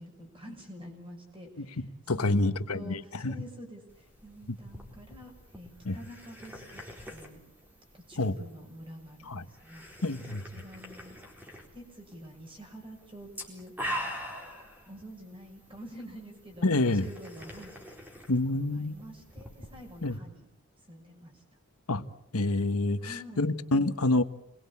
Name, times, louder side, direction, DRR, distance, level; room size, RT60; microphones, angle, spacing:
voice 1, 0.0-6.8 7.1-7.4 7.9-9.9 10.5-11.2 11.7-14.0 14.9-18.0 18.5-20.4 20.9-21.4 23.0-23.5, equal, 25° right, 3 dB, 6.2 m, -47 dB
voice 2, 1.6-3.3 5.9-6.0 8.2-8.3 9.3-9.4 10.0-10.4 16.6-17.1 18.3-19.0 20.0-20.2 21.9-22.1 22.3-24.2, left 2 dB, 85° left, 12 dB, 1.4 m, -27 dB
sound 1, 3.9-20.2, equal, 10° right, 4.1 m, -45 dB
28.0 x 22.0 x 8.6 m, 0.81 s
head